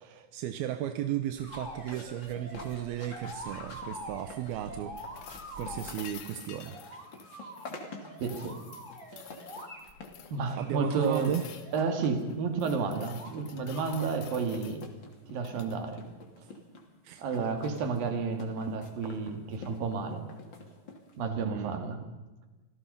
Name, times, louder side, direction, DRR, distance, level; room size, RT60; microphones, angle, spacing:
voice 1, 0.0-4.9 5.6-6.8 10.6-11.5 17.0-17.2 21.5-21.8, right 12 dB, 85° right, 9 dB, 2.8 m, -34 dB
sound 1, 1.4-21.3, left 3 dB, 35° left, 3.1 m, -49 dB
sound 2, 1.4-5.9 6.6-10.1 10.5-11.9 12.7-13.4 13.7-14.2 15.9-16.0, equal, 15° right, 3.7 m, -45 dB
sound 3, 5.0-7.8 8.2-10.4 11.0-11.8 12.3-14.9 15.4-15.8 17.8-17.9, left 9 dB, 70° left, 3.2 m, -50 dB
voice 2, 8.2-8.6 10.3-11.4 11.7-14.8 15.3-16.1 17.2-20.3 21.2-22.0, right 4 dB, 65° right, 7 dB, 3.8 m, -31 dB
27.5 x 17.5 x 5.6 m, 1.2 s
omnidirectional pair, 4.4 m